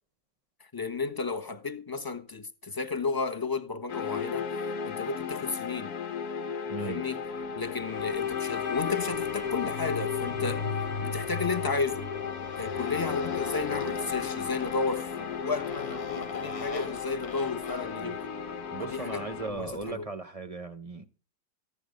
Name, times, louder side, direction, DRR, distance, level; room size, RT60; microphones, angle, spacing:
voice 1, 0.6-4.5 4.8-5.9 6.8-7.2 7.6-10.7 11.0-12.1 12.6-18.3 18.8-20.0, left 4 dB, 15° left, 0.9 m, -33 dB
sound 1, 3.9-19.5, left 7 dB, 55° left, 1.6 m, -34 dB
voice 2, 6.7-7.0 18.0-18.2 18.7-21.1, right 3 dB, 30° right, 0.7 m, -37 dB
Motorcycle, 7.3-20.0, left 3 dB, 35° left, 0.5 m, -41 dB
15.0 x 9.8 x 5.2 m
omnidirectional pair, 2.0 m